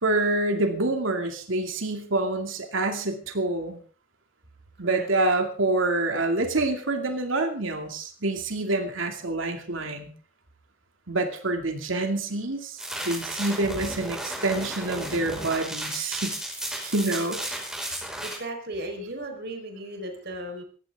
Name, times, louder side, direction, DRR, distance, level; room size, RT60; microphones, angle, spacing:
voice 1, 0.0-3.8 4.8-10.1 11.1-12.8 13.0-16.4 16.8-17.4, right 2 dB, 75° right, 4 dB, 2.5 m, -27 dB
voice 2, 4.8-5.1 18.2-20.6, right 1 dB, 55° right, 4 dB, 4.6 m, -36 dB
sound 1, 12.8-18.3, right 1 dB, 5° right, 5.3 m, -34 dB
19.5 x 15.5 x 3.7 m, 0.42 s
head